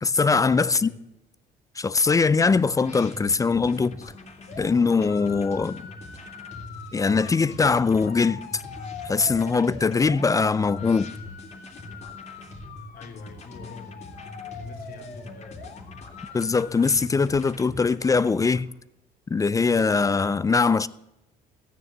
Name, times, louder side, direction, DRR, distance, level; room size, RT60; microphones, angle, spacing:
voice 1, 0.0-0.9 1.8-4.0 4.6-5.9 6.9-8.6 9.0-11.1 16.3-18.7 19.3-20.9, left 4 dB, 20° left, 0.4 m, -22 dB
voice 2, 0.7-1.0 12.9-14.0 14.3-15.6, left 4 dB, 60° left, 2.5 m, -45 dB
sound 1, 2.0-18.6, left 2 dB, 40° left, 2.5 m, -43 dB
sound 2, 4.5-16.9, left 6 dB, 80° left, 2.2 m, -43 dB
13.5 x 9.3 x 7.3 m
cardioid pair, 110°, 17 cm